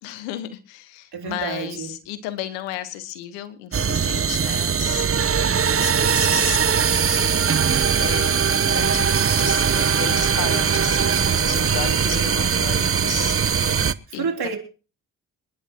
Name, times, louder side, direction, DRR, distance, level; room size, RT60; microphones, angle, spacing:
voice 1, 0.0-5.1 5.8-7.4 8.0-14.2, left 12 dB, 90° left, 1.3 m, -34 dB
voice 2, 1.1-1.9 11.4-12.1 14.1-14.6, right 5 dB, 60° right, 3.5 m, -30 dB
sound 1, 3.7-13.9, right 7 dB, 35° right, 0.8 m, -20 dB
27.0 x 11.0 x 3.0 m
hypercardioid pair, 45°, 42 cm